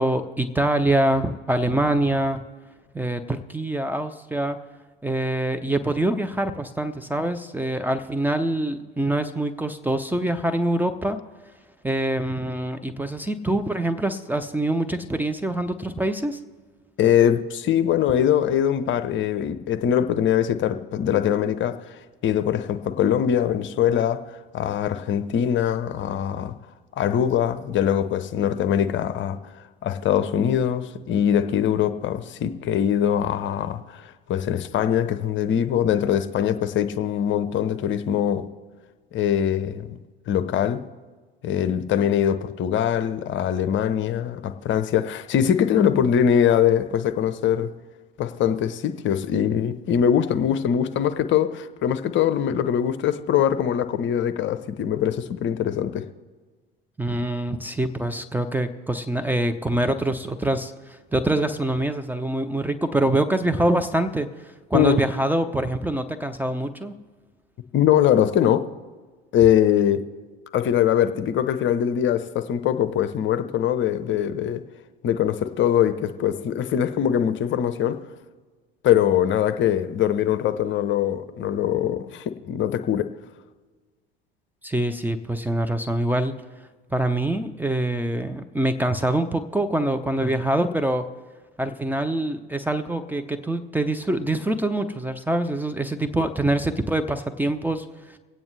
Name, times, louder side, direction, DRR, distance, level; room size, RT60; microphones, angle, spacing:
voice 1, 0.0-2.4 2.9-4.6 5.0-11.2 11.8-16.4 57.0-64.3 64.7-67.0 84.6-86.3 86.9-91.1 91.6-97.9, right 1 dB, 5° right, 0.6 m, -25 dB
voice 2, 17.0-24.2 24.5-26.5 27.0-29.4 29.8-38.5 39.1-40.0 40.3-40.8 41.4-47.7 48.2-56.1 64.7-65.0 67.7-68.7 69.3-70.0 70.5-74.6 75.0-78.0 78.8-83.1, left 9 dB, 40° left, 0.8 m, -22 dB
24.5 x 8.9 x 3.3 m
figure-of-eight pair, 70°, 30 cm